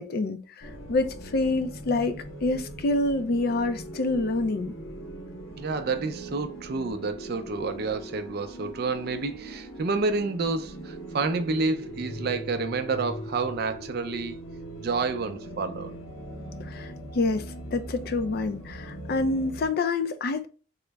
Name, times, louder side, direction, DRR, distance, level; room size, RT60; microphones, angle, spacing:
voice 1, 0.0-4.7 16.6-20.5, left 2 dB, 50° left, 0.4 m, -27 dB
sound 1, 0.6-19.7, right 1 dB, 80° left, 0.8 m, -40 dB
voice 2, 5.6-14.4 14.8-15.9, right 4 dB, 50° right, 0.4 m, -29 dB
3.7 x 2.0 x 3.3 m
head